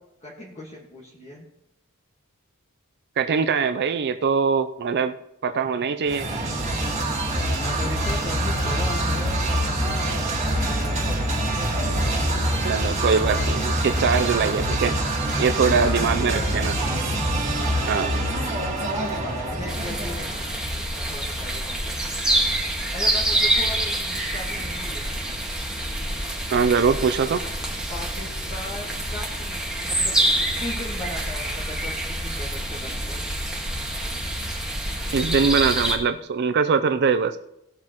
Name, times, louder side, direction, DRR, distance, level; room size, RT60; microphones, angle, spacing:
voice 1, 0.2-1.5 7.6-11.5 15.7-16.6 17.4-18.3 18.8-20.4 20.7-22.0 22.9-25.1 27.9-30.1 30.6-33.2, left 1 dB, 30° left, -3 dB, 1.6 m, -38 dB
voice 2, 3.2-5.1 5.4-6.3 12.6-15.0 15.4-16.7 17.9-18.2 26.5-27.4 35.1-37.4, right 5 dB, 50° right, 9 dB, 0.5 m, -22 dB
sound 1, 6.0-20.7, right 1 dB, 30° right, 1.9 m, -25 dB
sound 2, 19.7-36.0, right 1 dB, 5° right, 1.7 m, -26 dB
18.0 x 7.5 x 3.0 m, 0.83 s
head